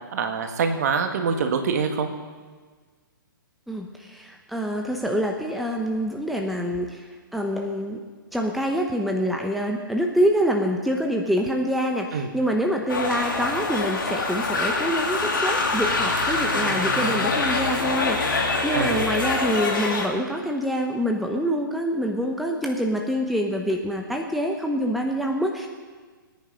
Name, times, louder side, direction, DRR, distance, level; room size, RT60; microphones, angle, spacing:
voice 1, 0.0-2.1 12.1-12.3 18.7-19.0, right 5 dB, 50° right, 6 dB, 1.9 m, -25 dB
voice 2, 3.7-7.1 7.3-8.0 8.3-25.7, equal, ahead, 1 dB, 1.0 m, -26 dB
sound 1, 12.9-20.1, left 3 dB, 70° left, 3.0 m, -25 dB
22.5 x 9.7 x 5.6 m, 1.5 s
figure-of-eight pair, 120°, 12 cm